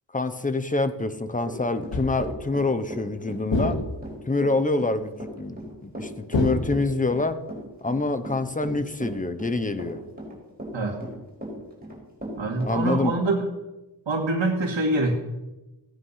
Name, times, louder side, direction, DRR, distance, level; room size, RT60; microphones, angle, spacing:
voice 1, 0.1-3.8 4.3-7.4 7.8-10.0 12.6-13.1, left 2 dB, 20° left, 10 dB, 1.0 m, -26 dB
Run / Walk footsteps, 1.4-13.1, right 1 dB, 20° right, 5.3 m, -37 dB
sound 1, 1.9-2.4 3.5-4.3 6.3-7.2, left 3 dB, 80° left, 1.8 m, -28 dB
voice 2, 12.4-13.5 14.1-15.1, right 2 dB, 85° right, -2 dB, 2.1 m, -25 dB
16.0 x 9.6 x 5.7 m, 1.1 s
wide cardioid pair, 90°, 44 cm